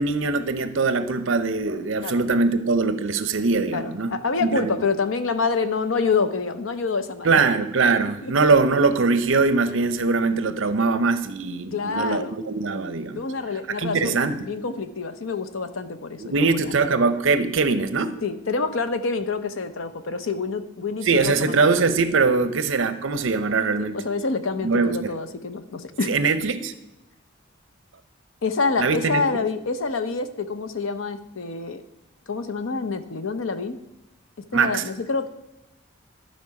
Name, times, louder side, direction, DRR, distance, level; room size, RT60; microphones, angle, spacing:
voice 1, 0.0-4.1 4.4-4.8 7.2-13.2 13.8-14.4 16.2-18.1 21.0-24.0 24.6-25.1 26.1-26.7 28.8-29.2 34.5-34.8, right 4 dB, 75° right, 11 dB, 0.7 m, -22 dB
voice 2, 3.7-7.4 8.2-8.3 11.7-12.4 13.1-16.7 18.2-21.8 23.8-26.2 28.4-31.8 32.3-33.8 34.4-35.3, left 4 dB, 90° left, 10 dB, 0.7 m, -27 dB
12.5 x 4.4 x 5.9 m, 0.92 s
head